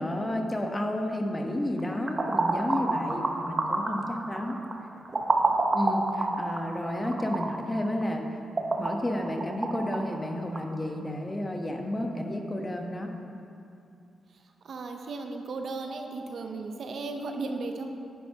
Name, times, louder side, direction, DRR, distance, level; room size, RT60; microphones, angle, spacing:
voice 1, 0.0-4.6 5.7-8.2 8.8-13.1 15.9-16.0, left 1 dB, 25° left, 3 dB, 1.1 m, -31 dB
sound 1, 1.8-10.7, right 3 dB, 40° right, 1.0 m, -30 dB
voice 2, 14.6-17.9, right 3 dB, 65° right, 4 dB, 0.8 m, -35 dB
10.5 x 9.0 x 3.0 m, 2.5 s
supercardioid pair, 60°, 0 cm